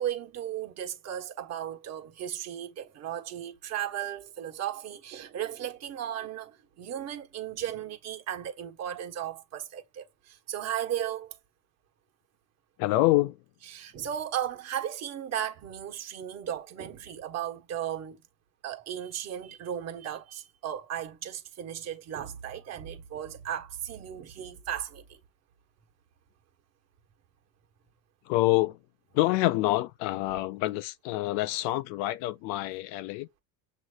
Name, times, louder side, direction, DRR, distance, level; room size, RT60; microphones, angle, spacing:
voice 1, 0.0-11.4 13.7-18.2 18.6-25.2, right 10 dB, 35° right, 1.3 m, -36 dB
voice 2, 12.8-13.4 28.3-28.8 29.1-33.4, left 18 dB, 85° left, 0.7 m, -26 dB
7.5 x 2.9 x 2.3 m
cardioid pair, 165°, 45 cm